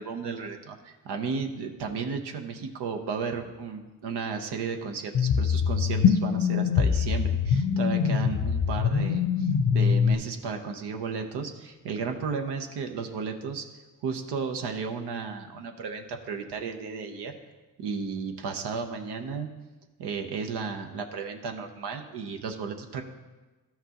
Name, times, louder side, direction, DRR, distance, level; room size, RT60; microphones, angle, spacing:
voice 1, 0.0-13.6 14.0-17.4 17.8-19.5 20.0-23.1, right 5 dB, 85° right, 4 dB, 0.8 m, -34 dB
sound 1, 5.1-10.1, left 6 dB, 55° left, 0.6 m, -23 dB
12.5 x 5.8 x 2.9 m, 1.2 s
cardioid pair, 55°, 39 cm